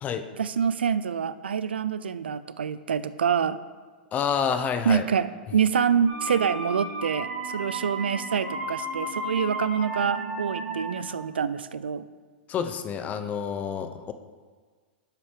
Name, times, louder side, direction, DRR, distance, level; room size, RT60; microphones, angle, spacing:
voice 1, 0.4-3.6 4.9-12.1, right 7 dB, 80° right, 14 dB, 0.4 m, -26 dB
voice 2, 4.1-5.1 12.5-14.1, left 7 dB, 25° left, 9 dB, 0.6 m, -28 dB
sound 1, 6.1-11.2, right 1 dB, 30° right, 2.6 m, -33 dB
7.2 x 5.7 x 4.9 m, 1.5 s
hypercardioid pair, 105°, 6 cm